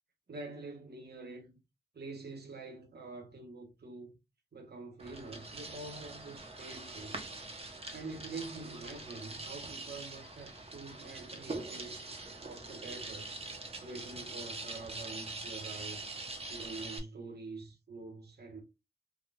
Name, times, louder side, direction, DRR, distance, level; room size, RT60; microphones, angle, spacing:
voice 1, 0.3-1.6 1.9-4.2 4.5-7.4 7.9-12.1 12.4-13.3 13.8-16.0 16.5-18.6, right 3 dB, 70° right, 0.8 m, -46 dB
sound 1, 5.0-17.0, right 2 dB, 35° right, 0.7 m, -44 dB
3.5 x 2.2 x 2.4 m
wide cardioid pair, 70°, 18 cm